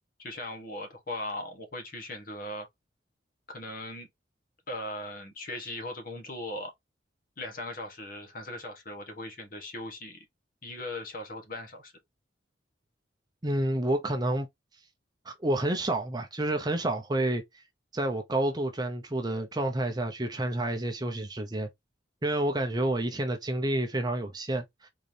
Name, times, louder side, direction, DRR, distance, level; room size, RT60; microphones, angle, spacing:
voice 1, 0.2-2.7 3.5-4.1 4.7-6.7 7.4-10.2 10.6-11.9, left 1 dB, 45° left, 1.2 m, -39 dB
voice 2, 13.4-14.5 15.3-17.6 17.9-21.7 22.2-24.9, right 1 dB, 20° right, 0.6 m, -29 dB
3.9 x 3.2 x 2.7 m
head